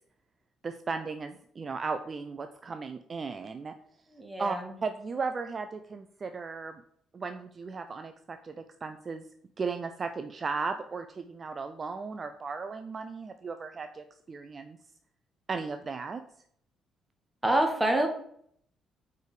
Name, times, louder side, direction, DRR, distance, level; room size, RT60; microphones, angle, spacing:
voice 1, 0.6-3.7 4.4-4.6 4.8-6.8 7.1-9.2 9.6-14.8 15.5-16.2, right 4 dB, 40° right, 8 dB, 0.4 m, -36 dB
voice 2, 4.2-4.7 17.4-18.1, right 1 dB, 10° right, 3 dB, 1.2 m, -26 dB
4.8 x 4.6 x 4.9 m, 0.67 s
cardioid pair, 95°, 0 cm